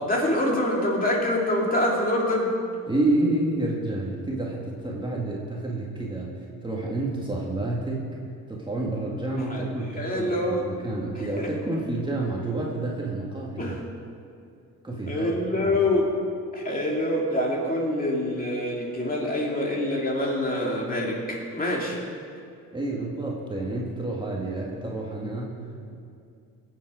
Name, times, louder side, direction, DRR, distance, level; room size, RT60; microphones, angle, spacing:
voice 1, 0.0-2.5 9.5-9.6 10.0-10.7 11.4-11.5 13.6-13.8 15.1-16.1 16.5-22.0, left 1 dB, 30° left, -2 dB, 2.7 m, -25 dB
voice 2, 2.9-8.2 8.5-13.8 14.8-15.3 15.6-15.7 22.7-26.0, right 2 dB, 15° right, -3 dB, 1.9 m, -29 dB
18.0 x 7.6 x 5.0 m, 2.4 s
cardioid pair, 90°, 30 cm